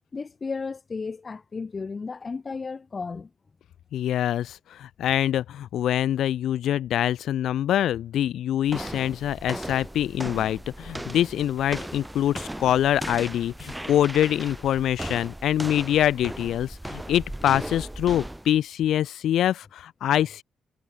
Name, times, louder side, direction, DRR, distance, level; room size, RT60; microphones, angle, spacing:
voice 1, 0.1-3.3, left 4 dB, 30° left, 0.9 m, -34 dB
voice 2, 3.9-20.4, left 11 dB, 75° left, 0.9 m, -25 dB
sound 1, 8.6-18.6, right 1 dB, 5° right, 4.9 m, -37 dB
cardioid pair, 90°, 0 cm